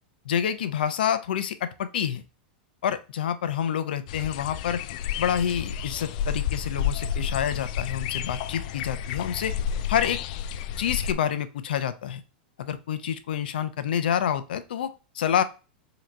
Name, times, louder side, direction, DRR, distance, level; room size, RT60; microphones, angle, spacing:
voice 1, 0.2-2.2 2.8-4.8 5.2-9.6 9.9-10.2 10.8-12.2 12.6-15.4, left 9 dB, 85° left, 12 dB, 0.7 m, -28 dB
sound 1, 4.1-11.1, left 8 dB, 55° left, 0.4 m, -31 dB
3.9 x 3.0 x 4.5 m, 0.31 s
supercardioid pair, 140°, 5 cm